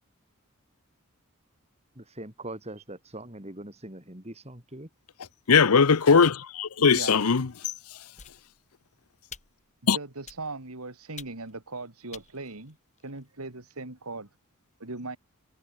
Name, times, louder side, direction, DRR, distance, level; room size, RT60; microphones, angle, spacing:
voice 1, 1.9-4.9, right 1 dB, 30° right, 4.6 m, -42 dB
voice 2, 5.5-7.5 9.9-10.0, left 5 dB, 85° left, 0.8 m, -20 dB
voice 3, 6.8-7.2 9.8-12.8 13.0-14.3 14.8-15.2, right 3 dB, 80° right, 2.6 m, -39 dB
Blunt Force Trauma (Clean and Juicy), 8.2-8.8 9.3-9.8 10.3-10.7 11.2-11.6 12.1-13.3, left 7 dB, 35° left, 7.0 m, -49 dB
head